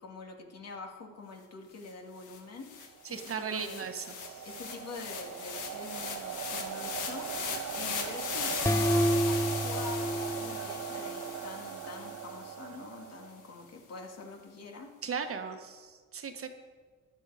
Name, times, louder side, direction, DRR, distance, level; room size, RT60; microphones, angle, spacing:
voice 1, 0.0-3.8 4.4-14.9, left 3 dB, 55° left, 2 dB, 2.4 m, -45 dB
sound 1, 1.9-2.0 2.2-12.6, left 6 dB, 85° left, 1.9 m, -39 dB
sound 2, 2.8-13.7, right 10 dB, 70° right, 0.6 m, -41 dB
voice 2, 3.0-4.4 15.0-16.5, right 6 dB, 45° right, 6 dB, 1.3 m, -37 dB
sound 3, 8.6-11.4, equal, 10° left, 0.6 m, -29 dB
14.5 x 11.0 x 5.0 m, 1.5 s
cardioid pair, 90°, 30 cm